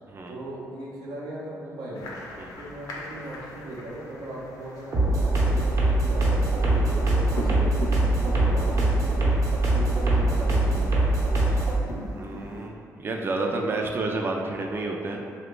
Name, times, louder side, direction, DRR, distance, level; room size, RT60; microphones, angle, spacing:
voice 1, 0.3-2.1 2.6-7.8 8.2-9.4 9.7-11.0, right 1 dB, 80° right, -5 dB, 0.8 m, -38 dB
sound 1, 1.9-12.7, left 1 dB, 75° left, 0.6 m, -40 dB
sound 2, 4.9-11.7, right 2 dB, 55° right, 0.8 m, -22 dB
voice 2, 12.1-15.2, right 2 dB, 35° right, 1 dB, 0.3 m, -30 dB
2.9 x 2.3 x 3.6 m, 2.3 s
supercardioid pair, 70°, 7 cm